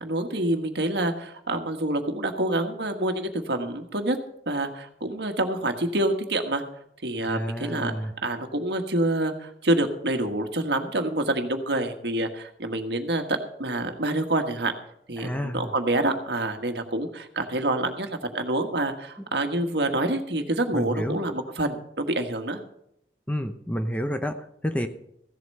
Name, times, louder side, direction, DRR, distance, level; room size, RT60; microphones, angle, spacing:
voice 1, 0.0-4.2 4.5-6.6 7.0-14.7 15.1-22.6, right 1 dB, 75° right, 6 dB, 1.5 m, -27 dB
voice 2, 7.2-8.1 15.2-15.7 20.7-21.2 23.3-24.9, equal, 10° left, 7 dB, 0.7 m, -29 dB
15.5 x 8.0 x 5.5 m, 0.75 s
head